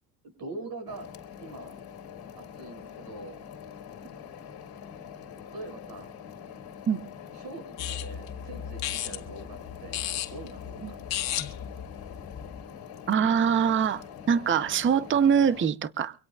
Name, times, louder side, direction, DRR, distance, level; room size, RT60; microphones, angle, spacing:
voice 1, 0.4-1.1 1.4-1.8 2.4-3.4 5.5-6.1 7.3-11.0, right 2 dB, 50° right, 6 dB, 7.0 m, -43 dB
sound 1, 0.9-15.7, left 8 dB, 50° left, 2.3 m, -44 dB
sound 2, 7.8-12.6, left 11 dB, 65° left, 1.9 m, -35 dB
voice 2, 13.1-14.0 14.3-16.1, right 7 dB, 25° right, 15 dB, 0.7 m, -23 dB
24.5 x 17.5 x 2.3 m, 0.34 s
cardioid pair, 110°, 47 cm